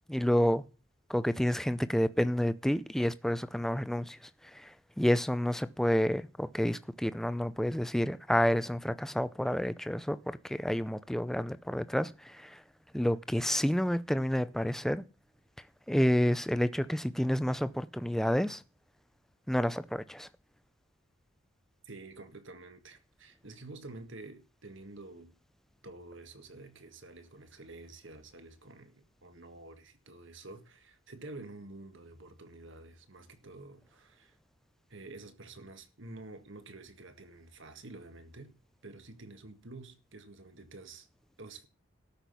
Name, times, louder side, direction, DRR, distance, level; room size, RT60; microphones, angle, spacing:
voice 1, 0.1-0.6 1.1-4.2 4.5-12.6 12.9-15.0 15.9-18.6 19.5-20.3, equal, ahead, 0.5 m, -29 dB
voice 2, 21.8-25.3 25.8-34.4 34.9-38.6 38.8-41.1 41.4-41.7, right 2 dB, 60° right, 1.7 m, -49 dB
13.0 x 5.9 x 8.3 m
head